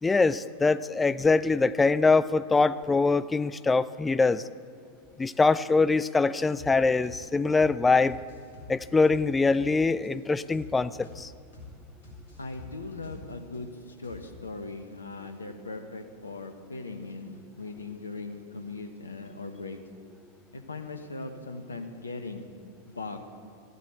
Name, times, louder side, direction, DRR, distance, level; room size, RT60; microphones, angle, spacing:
voice 1, 0.0-4.4 5.2-8.2 8.7-11.3, left 3 dB, 10° left, 16 dB, 0.4 m, -23 dB
sound 1, 6.5-6.7 7.0-7.2 7.5-7.7 8.0-9.7 10.0-10.1 10.5-10.7 11.0-11.2 11.5-11.7 12.0-13.6 14.0-14.5, left 3 dB, 60° left, 4.2 m, -47 dB
voice 2, 12.4-19.8 20.5-22.5 22.9-23.3, left 3 dB, 75° left, 6 dB, 1.2 m, -39 dB
14.0 x 9.7 x 8.0 m, 2.3 s
figure-of-eight pair, 90°, 0 cm